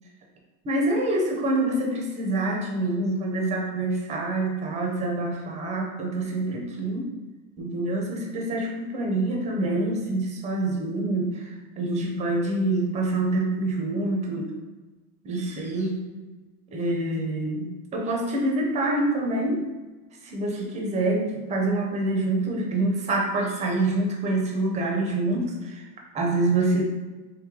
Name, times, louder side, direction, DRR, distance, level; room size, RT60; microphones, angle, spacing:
voice 1, 0.6-7.1 7.6-14.5 15.2-16.1 16.7-19.6 20.2-25.9 26.1-26.8, right 2 dB, 15° right, 0 dB, 0.4 m, -26 dB
3.2 x 3.0 x 3.6 m, 1.2 s
supercardioid pair, 140°, 48 cm